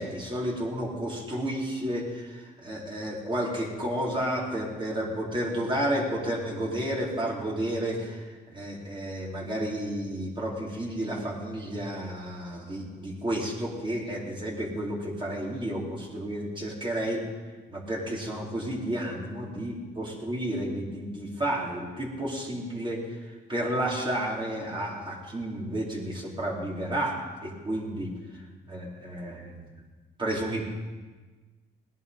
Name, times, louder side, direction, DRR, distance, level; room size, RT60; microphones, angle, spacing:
voice 1, 0.0-8.2 8.5-17.2 17.7-23.0 23.5-27.2 27.4-28.1 28.7-29.7 30.2-30.6, right 1 dB, 25° right, -3 dB, 4.1 m, -31 dB
19.0 x 11.0 x 5.4 m, 1.3 s
cardioid pair, 90°, 20 cm